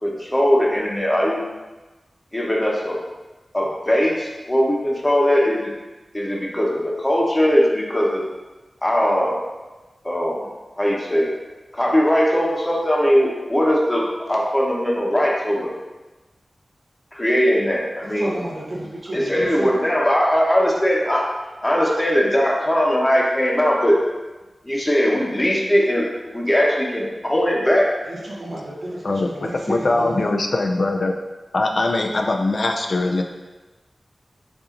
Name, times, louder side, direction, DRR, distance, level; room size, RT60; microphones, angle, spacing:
voice 1, 0.0-1.4 2.3-3.0 3.5-5.7 6.1-8.2 8.8-9.4 10.0-10.5 10.8-11.3 11.7-15.7 17.1-18.4 19.1-21.3 21.6-24.0 24.6-26.0 26.3-27.9, equal, 20° left, -3 dB, 0.9 m, -20 dB
voice 2, 18.2-19.9 28.1-30.3, right 1 dB, 65° right, -4 dB, 1.0 m, -31 dB
voice 3, 29.7-31.1 31.5-33.2, left 2 dB, 60° left, 3 dB, 0.4 m, -21 dB
6.6 x 2.7 x 2.5 m, 1.2 s
wide cardioid pair, 75°, 0 cm